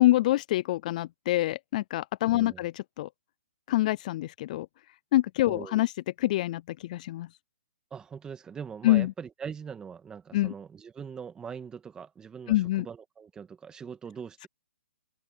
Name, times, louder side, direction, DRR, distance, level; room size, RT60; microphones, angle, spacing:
voice 1, 0.0-3.1 3.7-4.7 5.1-5.9 6.2-7.3 8.8-9.1 10.3-10.5 12.5-12.9, left 16 dB, 35° left, 0.3 m, -25 dB
voice 2, 2.3-2.7 5.5-5.9 7.9-14.5, right 6 dB, 10° right, 1.8 m, -42 dB
open air
hypercardioid pair, 145°, 7 cm